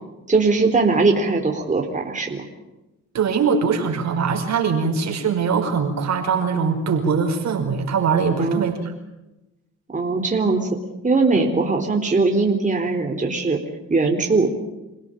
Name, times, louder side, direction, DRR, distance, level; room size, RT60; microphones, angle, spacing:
voice 1, 0.3-2.4 8.4-8.7 9.9-10.7 11.0-13.6 13.9-14.5, right 3 dB, 25° right, 2 dB, 3.9 m, -20 dB
voice 2, 3.1-8.9 11.3-11.4, right 5 dB, 65° right, 4 dB, 5.3 m, -22 dB
28.0 x 17.0 x 9.1 m, 0.98 s
cardioid pair, 90°, 30 cm